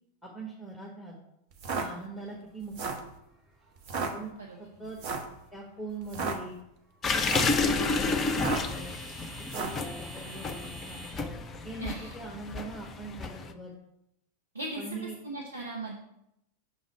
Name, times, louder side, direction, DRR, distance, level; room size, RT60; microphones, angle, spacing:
voice 1, 0.2-1.1 1.7-3.0 3.9-4.3 4.6-5.0 5.5-6.6 7.1-9.0 9.5-11.0 11.6-13.7 14.8-15.2, right 3 dB, 5° right, -2 dB, 1.3 m, -42 dB
sound 1, 1.5-1.9 2.6-3.1 3.8-4.1 5.0-5.3 6.0-6.4 7.1-7.6 8.3-8.8 9.5-9.8, right 5 dB, 45° right, 1.0 m, -33 dB
sound 2, 2.1-13.3, right 1 dB, 20° right, 1.4 m, -49 dB
sound 3, 7.0-13.5, left 4 dB, 20° left, 0.6 m, -31 dB
voice 2, 11.8-12.1 14.5-14.8 15.2-15.9, right 2 dB, 75° right, -2 dB, 1.0 m, -37 dB
6.7 x 3.9 x 6.0 m, 0.81 s
figure-of-eight pair, 90°, 0 cm